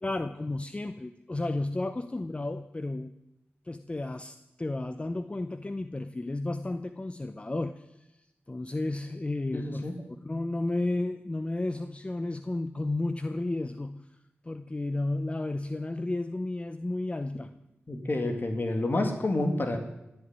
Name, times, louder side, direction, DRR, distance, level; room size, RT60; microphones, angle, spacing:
voice 1, 0.0-3.1 3.7-7.9 8.5-14.0 14.4-17.5, left 2 dB, 25° left, 10 dB, 0.7 m, -32 dB
voice 2, 9.5-9.9 17.9-19.8, left 2 dB, 50° left, 5 dB, 2.2 m, -29 dB
15.5 x 8.0 x 9.7 m, 0.91 s
cardioid pair, 60°, 4 cm